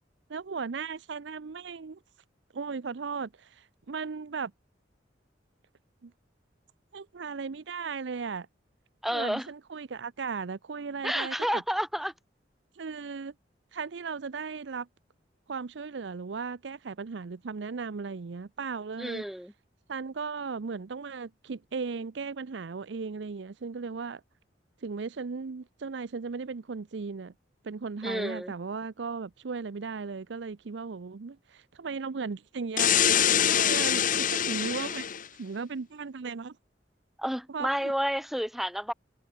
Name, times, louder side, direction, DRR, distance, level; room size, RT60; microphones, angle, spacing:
voice 1, 0.3-2.0 2.5-4.5 6.0-6.1 6.9-8.5 9.1-11.6 12.8-13.3 13.7-14.9 15.5-19.2 19.9-24.2 24.8-27.3 27.6-35.1 35.4-36.6 37.5-37.9, right 5 dB, 70° right, 0.6 m, -36 dB
voice 2, 9.0-9.5 11.0-12.1 19.0-19.5 28.0-28.5 33.5-33.7 37.2-38.9, equal, ahead, 2.1 m, -30 dB
sound 1, 32.8-35.2, left 9 dB, 45° left, 1.0 m, -24 dB
head